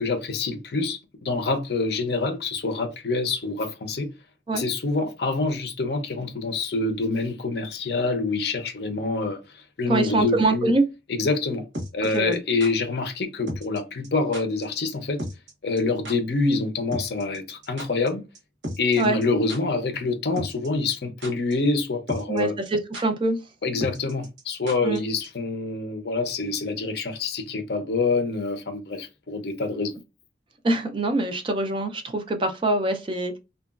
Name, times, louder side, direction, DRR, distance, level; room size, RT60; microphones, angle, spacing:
voice 1, 0.0-4.1 4.5-10.7 11.1-11.6 11.9-15.2 15.6-18.2 18.8-22.5 23.6-29.9, left 3 dB, 60° left, 0.5 m, -26 dB
voice 2, 9.9-10.8 12.1-12.4 19.0-19.2 22.3-23.4 24.8-25.0 30.6-33.4, right 2 dB, 30° right, 0.4 m, -24 dB
sound 1, 11.7-12.7 13.5-13.8 14.0-14.1 14.3-14.6 14.9-15.0 15.2-15.5 15.8-16.1 16.9-18.1 18.3-18.4 18.6-19.2 19.5-19.6 20.4-20.7 20.9-21.5 21.8-21.9 22.1-22.4 22.6-22.7 22.9-23.0 23.8-25.0 25.2-25.3, equal, 80° right, 0.9 m, -34 dB
2.8 x 2.2 x 2.3 m
head